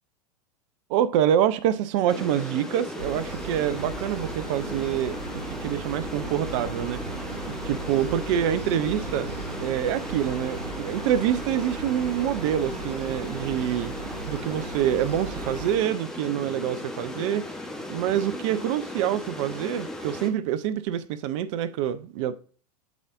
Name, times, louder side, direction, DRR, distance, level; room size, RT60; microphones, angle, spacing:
voice 1, 0.9-7.3 7.6-9.3 9.6-14.0 14.2-17.5 17.9-22.4, right 10 dB, 50° right, 0.6 m, -26 dB
sound 1, 2.1-20.3, left 1 dB, 5° left, 1.1 m, -37 dB
sound 2, 3.0-15.8, right 3 dB, 85° right, 0.8 m, -37 dB
11.5 x 4.0 x 2.6 m
figure-of-eight pair, 95°, 20 cm